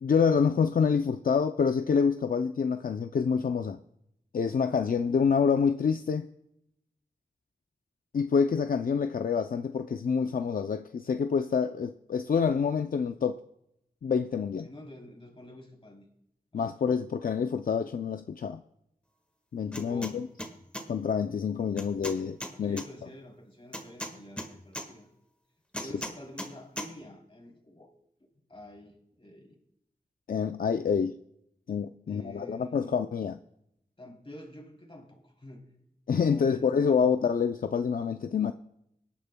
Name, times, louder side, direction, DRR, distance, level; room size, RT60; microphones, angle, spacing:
voice 1, 0.0-3.8 4.3-6.3 8.1-13.4 14.0-14.7 16.5-18.6 19.5-20.3 20.9-22.8 25.8-25.9 30.3-31.2 31.7-33.4 36.1-38.5, left 6 dB, 70° left, 8 dB, 0.4 m, -27 dB
voice 2, 14.6-16.1 16.5-16.7 19.7-20.2 22.4-25.1 25.7-27.9 28.5-29.5 32.1-33.0 34.0-35.7 36.2-37.1, left 1 dB, 35° left, 0 dB, 3.1 m, -48 dB
sound 1, 19.7-20.1 20.4-20.9 21.8-22.9 23.7-24.9 25.7-26.5 26.8-26.9, equal, 10° left, 1.5 m, -37 dB
24.0 x 10.0 x 2.2 m, 0.78 s
wide cardioid pair, 85°, 15 cm